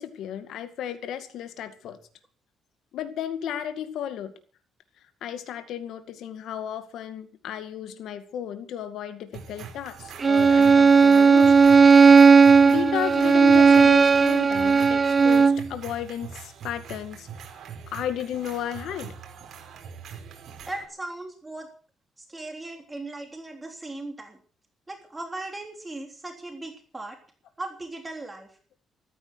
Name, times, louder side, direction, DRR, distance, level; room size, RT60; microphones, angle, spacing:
voice 1, 0.0-2.0 2.9-4.3 5.2-11.7 12.2-17.3 17.9-19.1, left 10 dB, 80° left, 9 dB, 2.2 m, -34 dB
sound 1, 9.3-20.9, right 7 dB, 65° right, 5.1 m, -42 dB
Bowed string instrument, 10.2-15.7, right 5 dB, 35° right, 0.7 m, -15 dB
voice 2, 20.6-21.7 22.2-24.4 24.9-27.2 27.6-28.6, right 2 dB, 20° right, 3 dB, 3.5 m, -37 dB
15.0 x 14.5 x 6.4 m, 0.42 s
cardioid pair, 90°, 0 cm